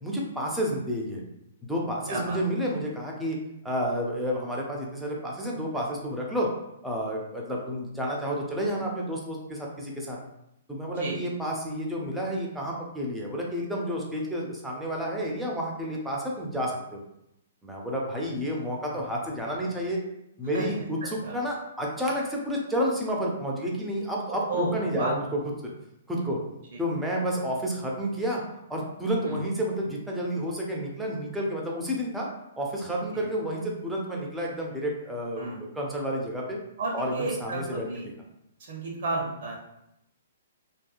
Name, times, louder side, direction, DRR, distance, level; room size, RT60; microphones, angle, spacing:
voice 1, 0.0-1.2 1.6-3.4 3.6-6.5 6.8-10.2 10.7-17.0 17.6-20.0 20.4-25.4 26.1-26.4 26.8-28.4 28.7-32.3 32.6-35.5 35.7-36.6 36.9-37.8, equal, 5° right, -3 dB, 0.5 m, -30 dB
voice 2, 2.1-2.4 10.8-11.2 20.5-20.8 21.2-21.3 24.3-25.1 26.7-26.8 29.2-29.4 33.1-33.2 35.4-35.6 36.8-38.1 38.6-39.6, right 2 dB, 50° right, -2 dB, 0.6 m, -32 dB
2.7 x 2.3 x 2.3 m, 0.83 s
figure-of-eight pair, 115°, 0 cm